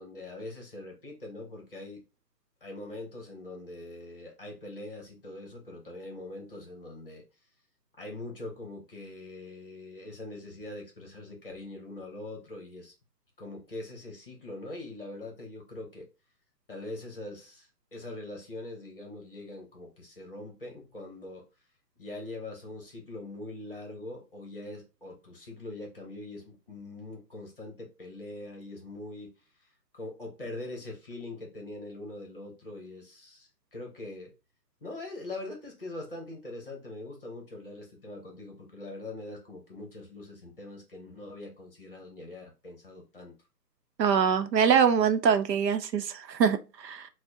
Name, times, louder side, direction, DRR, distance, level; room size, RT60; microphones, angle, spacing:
voice 1, 0.0-2.0 2.6-7.2 8.0-12.9 13.4-16.1 16.7-21.5 22.0-29.3 29.9-34.3 34.8-43.3, left 2 dB, 35° left, 0.8 m, -42 dB
voice 2, 44.0-47.1, right 7 dB, 75° right, 0.7 m, -24 dB
4.4 x 2.1 x 2.6 m
hypercardioid pair, 170°, 50 cm